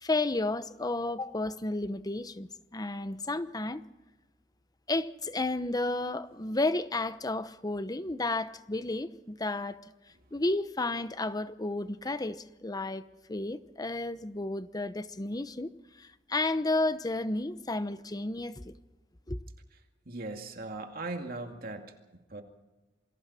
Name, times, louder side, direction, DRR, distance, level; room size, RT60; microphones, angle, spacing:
voice 1, 0.0-3.8 4.9-9.8 10.3-15.7 16.0-18.7 19.3-19.4, left 2 dB, 20° left, 0.9 m, -32 dB
voice 2, 20.1-22.4, right 2 dB, 55° right, 2.4 m, -39 dB
28.0 x 24.5 x 4.3 m
head